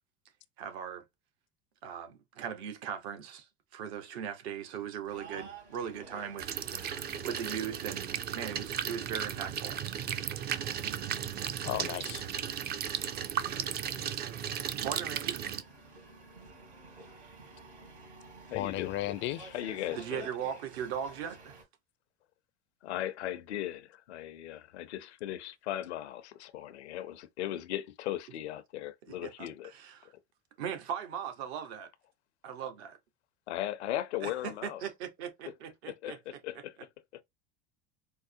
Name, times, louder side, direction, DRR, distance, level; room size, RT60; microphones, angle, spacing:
voice 1, 0.6-1.0 1.8-9.8 14.8-15.4 19.9-21.6 29.1-30.1 30.6-31.9 32.4-33.0 34.2-35.3 35.6-36.4, right 8 dB, 70° right, 1.1 m, -39 dB
sound 1, 5.1-21.6, right 3 dB, 90° right, 2.7 m, -52 dB
sound 2, 6.4-15.6, right 9 dB, 30° right, 0.4 m, -35 dB
voice 2, 11.6-12.2 18.5-19.6, left 15 dB, 35° left, 0.4 m, -34 dB
voice 3, 18.5-19.2 19.5-20.3 22.8-29.7 33.5-34.8 36.0-37.2, left 12 dB, 85° left, 0.7 m, -38 dB
4.6 x 2.1 x 2.6 m
hypercardioid pair, 95°, 33 cm